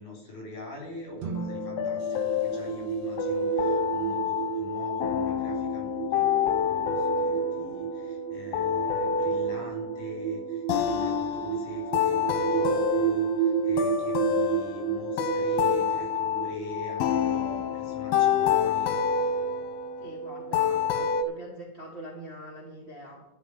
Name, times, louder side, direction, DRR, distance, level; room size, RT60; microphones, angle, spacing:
voice 1, 0.0-19.0, left 2 dB, 60° left, -1 dB, 5.4 m, -43 dB
sound 1, 1.2-3.6, right 5 dB, 70° right, 1.7 m, -39 dB
sound 2, 1.4-21.2, left 6 dB, 85° left, 2.7 m, -28 dB
sound 3, 2.0-18.3, right 9 dB, 85° right, 2.5 m, -32 dB
voice 2, 20.0-23.2, right 1 dB, 25° right, -3 dB, 1.5 m, -43 dB
12.0 x 5.7 x 8.6 m, 0.89 s
omnidirectional pair, 4.1 m